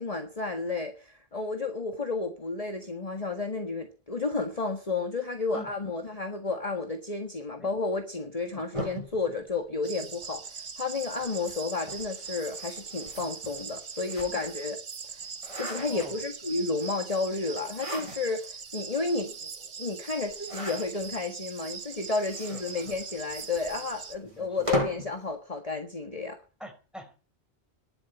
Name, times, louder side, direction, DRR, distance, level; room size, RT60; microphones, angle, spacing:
voice 1, 0.0-14.8 15.1-15.2 15.6-19.5 19.8-26.4, left 3 dB, 35° left, 1.7 m, -32 dB
sound 1, 8.7-10.3 11.2-14.7 15.1-16.5 17.5-18.5 19.0-19.1 19.3-19.4 20.3-21.2 21.9-25.1, equal, 30° right, 7.8 m, -38 dB
sound 2, 9.8-24.2, right 6 dB, 85° right, 1.6 m, -41 dB
voice 2, 15.9-16.2 22.5-23.0 24.2-24.7 26.6-27.3, equal, ahead, 4.5 m, -45 dB
11.0 x 11.0 x 9.7 m
omnidirectional pair, 1.1 m